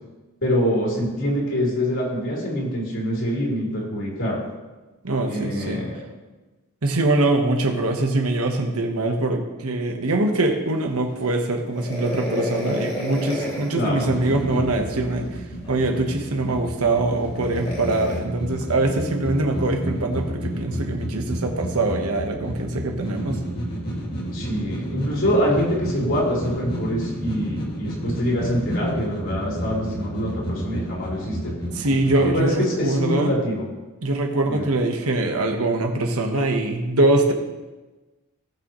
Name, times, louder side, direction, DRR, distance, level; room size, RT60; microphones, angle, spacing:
voice 1, 0.4-4.4 5.3-6.0 13.7-14.1 24.3-31.5 32.2-33.7 34.5-34.7, equal, 60° left, -5 dB, 3.7 m, -25 dB
voice 2, 5.0-5.8 6.8-23.4 31.7-33.3 34.0-37.3, right 2 dB, 85° right, 3 dB, 1.2 m, -23 dB
sound 1, 11.7-13.8 15.6-15.8 17.4-18.2, left 1 dB, 30° left, 2.4 m, -30 dB
sound 2, 13.9-32.4, equal, 45° left, 2.1 m, -31 dB
18.0 x 6.4 x 3.1 m, 1.2 s
head